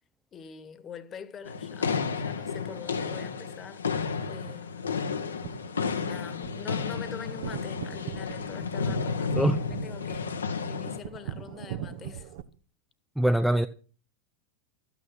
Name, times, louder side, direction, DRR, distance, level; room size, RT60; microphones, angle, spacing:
voice 1, 0.3-3.8 4.3-5.0 6.0-12.3, left 7 dB, 25° left, 1.6 m, -44 dB
sound 1, 1.5-11.0, left 5 dB, 70° left, 1.4 m, -32 dB
sound 2, 5.3-12.4, right 10 dB, 55° right, 1.2 m, -41 dB
voice 2, 13.2-13.7, right 1 dB, ahead, 0.7 m, -23 dB
14.0 x 9.5 x 6.1 m
figure-of-eight pair, 90°, 0 cm